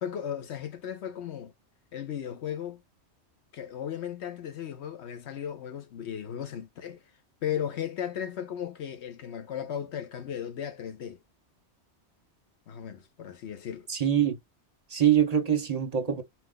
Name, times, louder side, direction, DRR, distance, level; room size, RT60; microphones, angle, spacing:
voice 1, 0.0-1.5 1.9-2.8 3.5-7.0 7.4-11.2 12.7-13.9, left 9 dB, 75° left, 1.0 m, -36 dB
voice 2, 13.9-14.4 14.9-16.2, right 9 dB, 40° right, 1.0 m, -24 dB
4.5 x 2.5 x 3.8 m
omnidirectional pair, 1.1 m